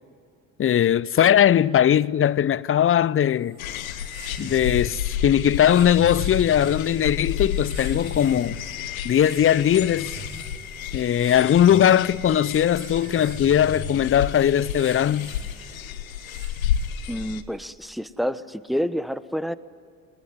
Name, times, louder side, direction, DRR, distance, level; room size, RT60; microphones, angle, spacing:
voice 1, 0.6-3.6 4.4-8.6 9.0-10.1 10.9-15.3, left 10 dB, 30° left, 0.6 m, -20 dB
sound 1, 3.4-17.3, right 3 dB, 45° right, 6.9 m, -43 dB
sound 2, 3.6-17.4, left 9 dB, 90° left, 0.9 m, -31 dB
voice 2, 17.1-19.5, equal, ahead, 1.0 m, -28 dB
21.5 x 20.5 x 9.7 m
hypercardioid pair, 55°, 41 cm